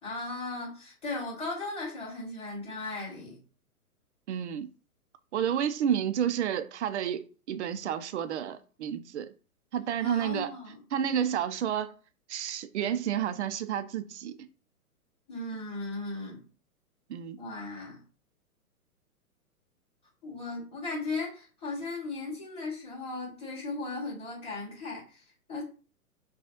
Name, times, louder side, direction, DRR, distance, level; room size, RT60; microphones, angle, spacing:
voice 1, 0.0-3.4 10.0-10.8 15.3-16.4 17.4-18.0 20.2-25.6, left 2 dB, 15° left, 2.3 m, -37 dB
voice 2, 4.3-4.7 5.3-9.3 9.7-10.5 10.9-11.9 12.3-14.4 17.1-17.4, right 9 dB, 50° right, 0.6 m, -30 dB
5.5 x 2.4 x 2.9 m
hypercardioid pair, 125°, 44 cm